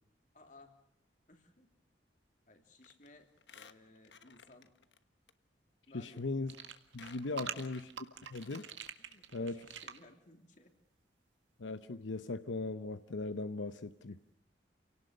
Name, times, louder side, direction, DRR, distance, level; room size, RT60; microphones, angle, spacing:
voice 1, 0.3-0.7 1.3-1.7 2.5-4.7 5.9-6.2 7.2-7.7 9.0-10.7 14.1-14.2, left 2 dB, 45° left, 5 dB, 3.1 m, -60 dB
Squeak, 2.8-3.1 3.4-5.0 5.3-5.4 6.2-6.3 6.6-8.9 9.3-9.4 9.6-9.7, left 6 dB, 70° left, 1.2 m, -57 dB
voice 2, 5.9-6.5 6.9-7.9 8.3-8.6 9.3-9.6 11.6-14.2, left 3 dB, 90° left, 11 dB, 0.8 m, -38 dB
sound 1, 6.5-10.0, right 8 dB, 80° right, 1.8 m, -45 dB
29.0 x 18.0 x 6.5 m, 0.76 s
head